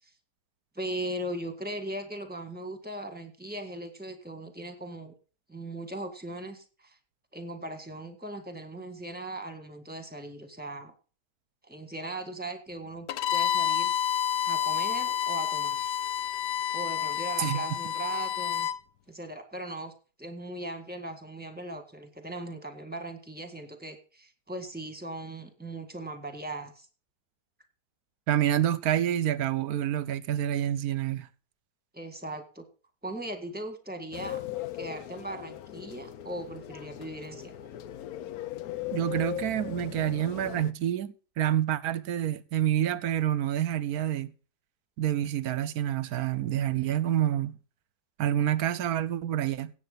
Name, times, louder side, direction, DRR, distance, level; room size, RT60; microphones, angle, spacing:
voice 1, 0.8-5.1 5.5-7.0 7.3-10.9 11.6-15.9 16.7-18.7 19.1-19.9 20.2-26.9 31.9-32.7 33.0-34.4 34.7-37.6, right 1 dB, 5° right, 1.8 m, -39 dB
Bowed string instrument, 13.1-18.8, left 9 dB, 80° left, 1.3 m, -29 dB
voice 2, 28.3-31.3 38.9-44.3 45.0-47.6 48.2-49.7, right 11 dB, 65° right, 1.1 m, -28 dB
sound 1, 34.1-40.7, left 12 dB, 65° left, 1.1 m, -38 dB
16.5 x 8.0 x 4.0 m
omnidirectional pair, 1.9 m